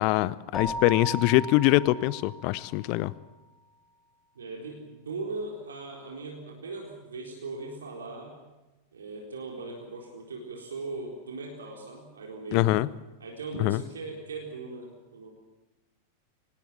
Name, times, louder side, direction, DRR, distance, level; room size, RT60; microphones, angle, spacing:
voice 1, 0.0-3.1 12.5-12.9 13.6-13.8, left 18 dB, 45° left, 20 dB, 0.7 m, -23 dB
Keyboard (musical), 0.5-3.0, left 1 dB, 15° left, 3.6 m, -36 dB
voice 2, 4.3-8.4 8.9-12.8 13.2-15.3, right 3 dB, 70° right, 1 dB, 4.1 m, -39 dB
25.0 x 20.0 x 7.4 m, 1.1 s
figure-of-eight pair, 90°, 0 cm